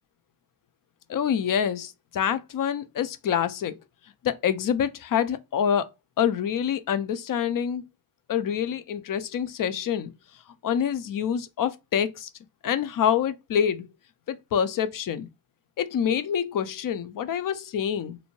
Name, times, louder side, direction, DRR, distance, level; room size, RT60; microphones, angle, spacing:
voice 1, 1.1-3.8 4.2-5.9 6.2-7.8 8.3-10.1 10.6-12.3 12.6-13.9 14.3-15.3 15.8-18.2, left 8 dB, 45° left, 0.5 m, -26 dB
2.7 x 2.1 x 2.9 m
supercardioid pair, 55°, 49 cm